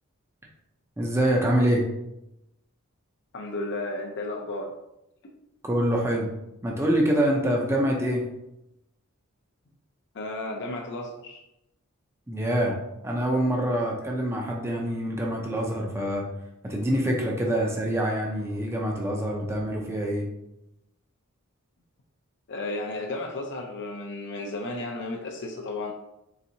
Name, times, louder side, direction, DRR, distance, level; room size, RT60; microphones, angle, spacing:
voice 1, 1.0-1.9 5.6-6.3 6.6-8.3 12.3-12.8 13.0-16.3 16.6-20.3, right 1 dB, 10° right, -1 dB, 0.5 m, -25 dB
voice 2, 3.3-4.7 10.1-11.4 22.5-25.9, left 2 dB, 55° left, 1 dB, 0.5 m, -33 dB
4.1 x 3.4 x 2.7 m, 0.86 s
head